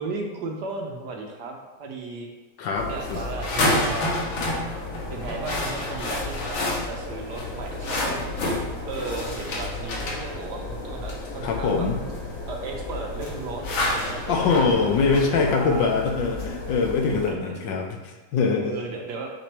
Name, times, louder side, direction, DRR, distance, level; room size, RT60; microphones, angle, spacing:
voice 1, 0.0-2.3 2.9-4.5 5.1-8.3 8.8-11.9 12.5-15.9 17.1-17.6 18.6-19.3, right 3 dB, 65° right, 1 dB, 1.2 m, -35 dB
voice 2, 2.6-3.2 11.4-12.0 14.3-18.7, left 4 dB, 70° left, 3 dB, 1.4 m, -23 dB
sound 1, 2.7-17.3, left 2 dB, 85° left, 1.9 m, -30 dB
6.0 x 5.8 x 3.3 m, 1.2 s
omnidirectional pair, 2.2 m